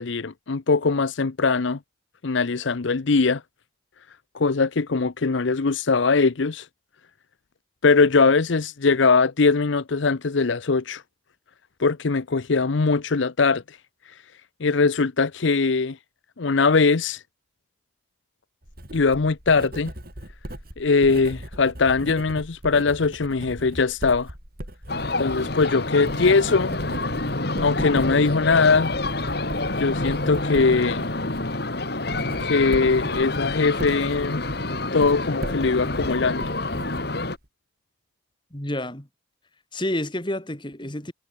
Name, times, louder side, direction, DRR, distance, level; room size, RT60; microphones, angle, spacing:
voice 1, 0.0-1.8 2.2-3.4 4.3-6.7 7.8-11.0 11.8-13.8 14.6-16.0 16.4-17.2 18.9-19.9 20.8-24.3 25.2-26.8 27.6-28.9 29.8-31.1 32.4-34.4 34.9-36.4, left 4 dB, 70° left, 0.7 m, -21 dB
Writing, 18.6-37.5, equal, 50° right, 7.3 m, -38 dB
sound 1, 24.9-37.4, left 2 dB, 55° left, 2.3 m, -28 dB
voice 2, 38.5-39.1 39.7-41.1, left 1 dB, 25° left, 2.8 m, -29 dB
head